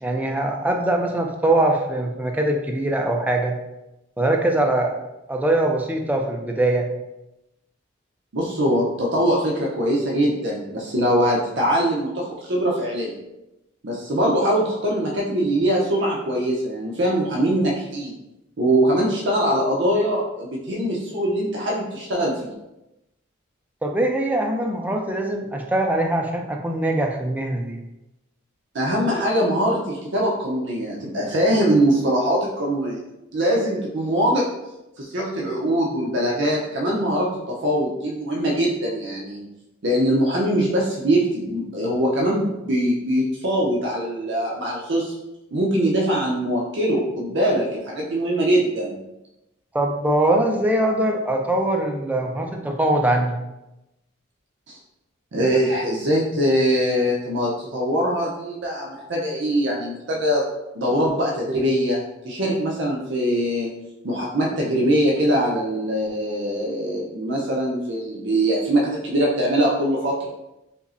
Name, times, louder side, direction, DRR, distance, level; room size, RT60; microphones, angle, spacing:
voice 1, 0.0-3.6 4.2-5.0 5.3-6.9 23.8-27.8 49.7-53.4, right 1 dB, 10° right, 2 dB, 0.3 m, -22 dB
voice 2, 8.3-13.2 13.8-18.2 18.6-22.5 28.7-33.0 33.3-34.5 35.0-39.5 39.8-45.1 45.5-49.0 54.7-54.8 55.3-60.4 60.8-62.0 62.2-63.7 64.0-70.3, equal, 60° right, -3 dB, 0.6 m, -22 dB
5.2 x 2.0 x 2.5 m, 0.93 s
head